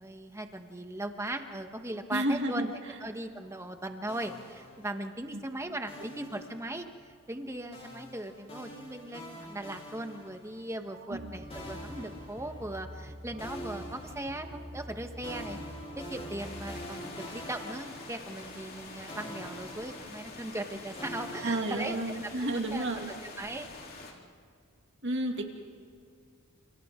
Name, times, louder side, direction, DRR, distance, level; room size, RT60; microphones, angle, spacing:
voice 1, 0.0-2.7 3.0-15.6 16.0-22.0 22.2-22.9 23.2-23.7, right 1 dB, 15° right, 6 dB, 1.2 m, -39 dB
voice 2, 2.1-2.7 5.3-5.4 11.1-11.3 21.4-23.1 25.0-25.4, right 1 dB, 55° right, 2 dB, 2.3 m, -31 dB
sound 1, 4.1-5.3 5.9-7.1 7.7-10.8 11.5-13.0 13.4-18.8 19.1-22.3, equal, 25° left, 4.2 m, -46 dB
sound 2, 11.1-16.9, equal, 30° right, 4.0 m, -46 dB
sound 3, 16.4-24.1, left 3 dB, 45° left, 3.3 m, -46 dB
30.0 x 29.0 x 3.7 m, 2.1 s
head